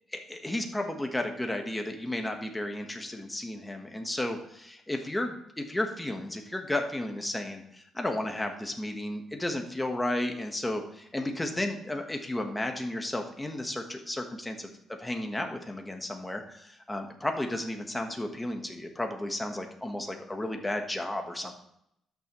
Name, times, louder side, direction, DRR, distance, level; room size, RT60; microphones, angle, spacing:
voice 1, 0.1-14.7 15.0-21.5, left 1 dB, 10° left, 4 dB, 1.3 m, -33 dB
12.5 x 6.1 x 3.1 m, 0.78 s
cardioid pair, 95°, 0 cm